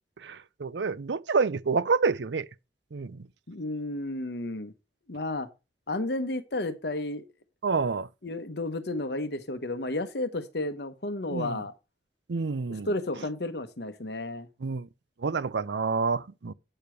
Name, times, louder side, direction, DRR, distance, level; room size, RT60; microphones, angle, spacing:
voice 1, 0.2-2.5 2.9-3.3 7.6-8.1 11.3-11.6 12.3-12.9 14.6-14.9 15.2-16.5, right 4 dB, 75° right, 0.6 m, -28 dB
voice 2, 3.5-4.7 5.1-5.5 5.9-7.2 8.2-11.7 12.7-14.5, left 2 dB, 65° left, 1.0 m, -32 dB
8.9 x 6.8 x 4.5 m
head